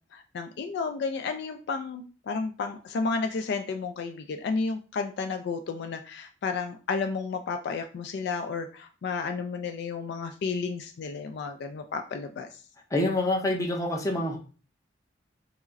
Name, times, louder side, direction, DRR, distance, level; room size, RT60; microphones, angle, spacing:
voice 1, 0.1-12.5, left 4 dB, 60° left, 6 dB, 0.3 m, -32 dB
voice 2, 12.9-14.4, left 1 dB, 20° left, 1 dB, 0.6 m, -26 dB
4.7 x 2.0 x 2.5 m, 0.36 s
head